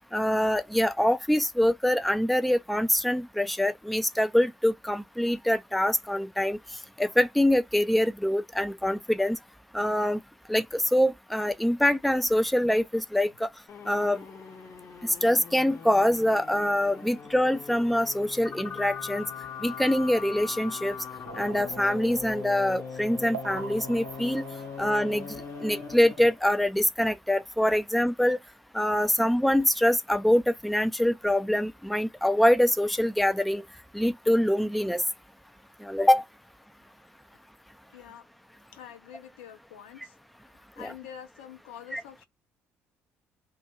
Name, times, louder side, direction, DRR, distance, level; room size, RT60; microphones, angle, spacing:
voice 1, 0.1-6.6 7.0-9.4 9.7-10.2 10.5-13.5 13.9-14.2 15.0-19.2 19.6-21.0 21.4-24.5 24.8-25.3 25.6-28.4 28.7-33.6 33.9-35.0 35.8-36.2 40.8-40.9 41.9-42.0, left 1 dB, ahead, 0.4 m, -24 dB
sound 1, 13.7-26.4, left 6 dB, 45° left, 0.7 m, -41 dB
sound 2, 21.3-26.6, right 6 dB, 90° right, 0.4 m, -44 dB
voice 2, 37.9-38.3 38.7-40.1 40.8-42.2, left 9 dB, 80° left, 0.5 m, -46 dB
2.2 x 2.1 x 2.9 m
hypercardioid pair, 55°, 6 cm